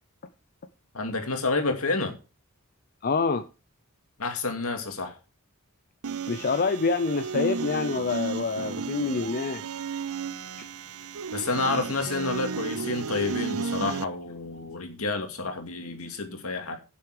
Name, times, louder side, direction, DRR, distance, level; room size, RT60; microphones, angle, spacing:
voice 1, 0.9-2.1 4.2-5.2 11.3-16.8, left 3 dB, 70° left, 2.4 m, -29 dB
voice 2, 3.0-3.4 6.3-9.6, left 4 dB, 45° left, 0.6 m, -26 dB
sound 1, 6.0-14.0, right 5 dB, 70° right, 0.5 m, -33 dB
10.5 x 7.0 x 4.9 m
head